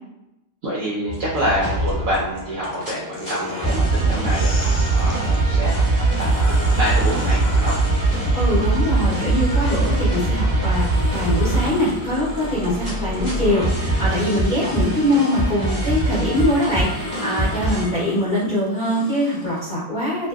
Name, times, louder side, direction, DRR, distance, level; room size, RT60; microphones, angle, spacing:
voice 1, 0.6-7.8, equal, 75° right, -5 dB, 0.7 m, -26 dB
sound 1, 1.1-17.8, right 2 dB, 5° left, 1.1 m, -22 dB
sound 2, 3.1-5.4 6.0-10.1 10.6-19.7, left 3 dB, 75° left, 1.2 m, -38 dB
voice 2, 8.3-20.3, left 1 dB, 45° left, -11 dB, 0.6 m, -23 dB
2.7 x 2.5 x 2.3 m, 0.90 s
omnidirectional pair, 2.0 m